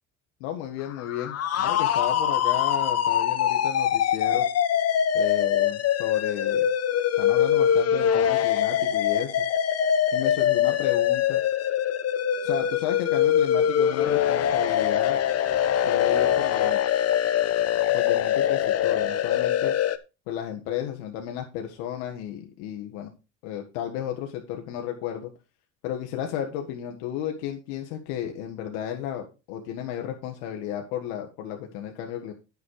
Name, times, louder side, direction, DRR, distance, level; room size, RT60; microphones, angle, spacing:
voice 1, 0.4-4.4 5.1-6.7 7.2-9.4 10.1-11.4 12.4-15.2 15.8-16.8 17.9-19.7 20.3-23.1 23.4-25.3 25.8-32.3, left 10 dB, 85° left, 3 dB, 1.6 m, -33 dB
sound 1, 0.9-20.0, left 9 dB, 45° left, 1.1 m, -23 dB
9.7 x 6.7 x 4.8 m, 0.30 s
supercardioid pair, 95°, 35 cm